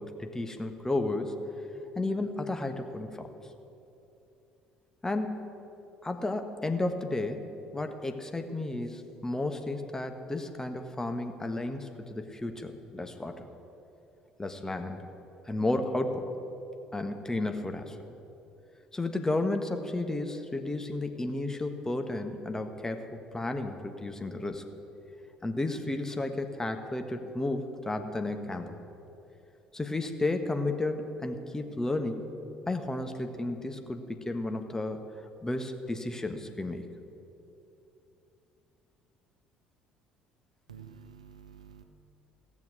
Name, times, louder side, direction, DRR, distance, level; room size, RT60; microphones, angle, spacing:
voice 1, 0.0-1.4 1.9-3.3 5.0-5.5 6.0-7.5 7.7-13.5 14.4-15.1 15.4-16.3 16.9-18.0 18.9-24.6 25.4-28.7 29.7-32.3 32.7-35.1 35.4-36.9, left 2 dB, 15° left, 6 dB, 1.3 m, -32 dB
voice 2, 40.7-41.8, right 7 dB, 90° right, 8 dB, 0.7 m, -49 dB
16.0 x 7.2 x 8.3 m, 2.8 s
hypercardioid pair, 55°, 3 cm